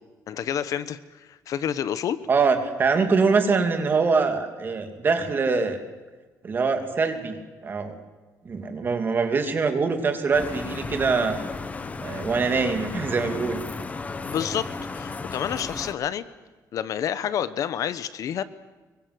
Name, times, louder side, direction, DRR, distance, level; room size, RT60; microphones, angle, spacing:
voice 1, 0.3-2.2 14.2-14.7 14.9-16.2 16.7-18.4, left 9 dB, 60° left, 15 dB, 1.1 m, -29 dB
voice 2, 2.3-5.8 6.4-7.4 7.6-8.0 8.4-11.4 12.0-13.6, right 4 dB, 30° right, 7 dB, 2.8 m, -23 dB
sound 1, 10.3-15.9, left 4 dB, 20° left, 1.2 m, -34 dB
25.0 x 23.0 x 7.9 m, 1.3 s
cardioid pair, 160°, 7 cm